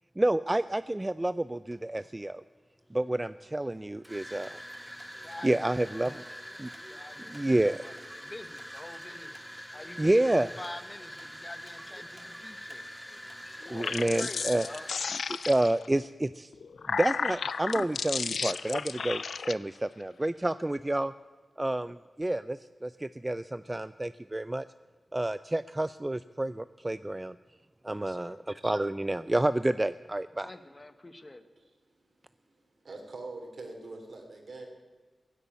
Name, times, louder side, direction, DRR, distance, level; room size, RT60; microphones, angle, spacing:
voice 1, 0.2-2.4 2.9-4.6 5.4-6.2 6.6-6.7 7.3-7.8 10.0-10.5 13.7-14.7 15.3-16.5 16.9-21.1 21.6-24.7 25.1-27.4 27.8-28.4 28.6-30.5, right 1 dB, 20° right, 14 dB, 0.3 m, -29 dB
sound 1, 0.8-1.0 1.7-2.2 3.0-14.9, equal, ahead, 1.6 m, -45 dB
voice 2, 5.2-5.7 6.0-6.4 6.9-9.4 9.7-12.8 13.6-14.9 27.9-28.4 30.4-31.5, left 2 dB, 30° left, 10 dB, 1.1 m, -46 dB
sound 2, 13.6-15.9 16.5-19.5, left 5 dB, 85° left, 0.4 m, -33 dB
voice 3, 32.5-34.7, right 2 dB, 70° right, 3 dB, 3.1 m, -44 dB
16.0 x 8.3 x 9.4 m, 1.4 s
cardioid pair, 60°, 0 cm